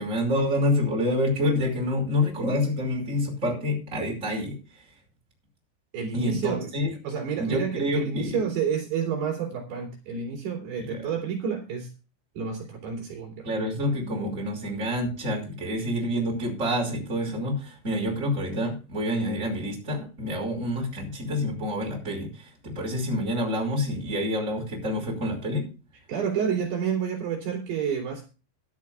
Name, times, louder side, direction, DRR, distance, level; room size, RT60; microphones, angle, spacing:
voice 1, 0.0-4.8 6.1-6.9 7.4-8.4 10.8-11.1 13.4-25.7, left 1 dB, 15° right, 0 dB, 5.0 m, -27 dB
voice 2, 5.9-6.7 7.0-11.9 12.4-13.5 26.1-28.2, right 7 dB, 60° right, 0 dB, 4.7 m, -29 dB
19.0 x 11.5 x 2.3 m, 0.33 s
omnidirectional pair, 5.7 m